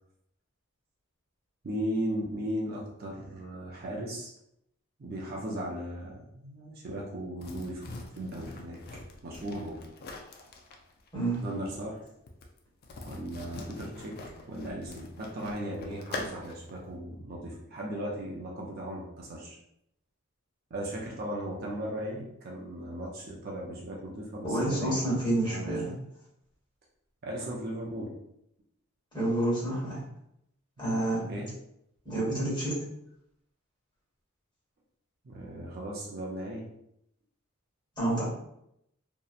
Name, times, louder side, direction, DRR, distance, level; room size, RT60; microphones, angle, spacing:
voice 1, 1.6-4.3 5.0-7.9 8.1-9.8 11.4-12.0 13.0-14.2 14.5-19.6 20.7-25.0 25.4-25.8 27.2-28.1 31.3-31.5 35.2-36.6, right 1 dB, 45° right, -2 dB, 0.4 m, -37 dB
sound 1, 7.4-16.7, left 2 dB, 45° left, 0.3 m, -43 dB
voice 2, 24.4-25.9 29.1-30.0 30.8-31.2 32.0-32.8 38.0-38.2, right 1 dB, 20° left, -7 dB, 1.2 m, -28 dB
2.7 x 2.0 x 2.4 m, 0.78 s
head